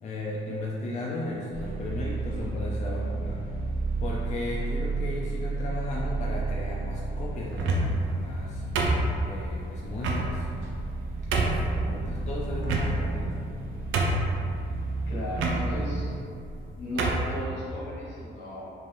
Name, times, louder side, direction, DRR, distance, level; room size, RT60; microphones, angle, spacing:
voice 1, 0.0-3.4 4.0-8.6 9.2-10.5 11.3-13.3, left 2 dB, 35° left, -4 dB, 0.4 m, -35 dB
sound 1, 1.5-16.1, right 3 dB, 45° right, 0.7 m, -32 dB
sound 2, 7.5-8.0 8.8-9.4 10.0-10.2 10.8-10.9 11.3-11.7 12.6-13.2 13.6-13.7 13.9-14.4 15.3-15.6 16.4-16.6 17.0-17.3, right 3 dB, 80° right, 0.4 m, -26 dB
voice 2, 15.1-16.1 16.7-18.7, left 1 dB, 70° left, -7 dB, 1.0 m, -36 dB
2.6 x 2.3 x 3.2 m, 2.5 s
cardioid pair, 90°, 20 cm